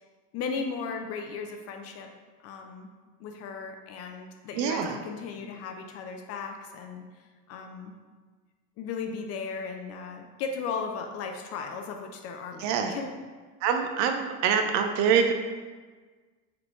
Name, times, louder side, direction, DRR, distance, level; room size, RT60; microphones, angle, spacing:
voice 1, 0.3-2.1 2.4-2.9 3.2-7.1 7.5-7.9 8.8-13.1, left 5 dB, 40° left, 4 dB, 0.4 m, -36 dB
voice 2, 4.6-5.0 12.6-12.9 13.6-15.3, right 7 dB, 45° right, 5 dB, 0.4 m, -25 dB
3.6 x 3.5 x 3.1 m, 1.4 s
hypercardioid pair, 100°, 41 cm